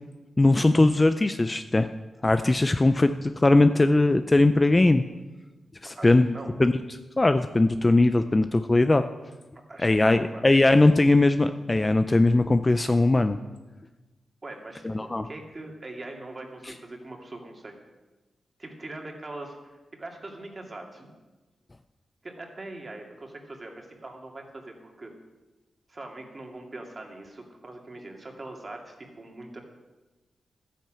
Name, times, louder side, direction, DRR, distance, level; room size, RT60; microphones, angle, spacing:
voice 1, 0.4-1.9 2.2-5.0 5.8-6.7 7.2-9.0 9.8-13.4 14.8-15.3, left 2 dB, 20° left, 9 dB, 0.5 m, -20 dB
voice 2, 5.8-6.6 9.7-10.5 14.4-17.7 18.6-21.1 22.2-25.1 25.9-29.6, right 2 dB, 30° right, 2 dB, 2.4 m, -42 dB
14.0 x 10.0 x 7.5 m, 1.2 s
wide cardioid pair, 140°, 0 cm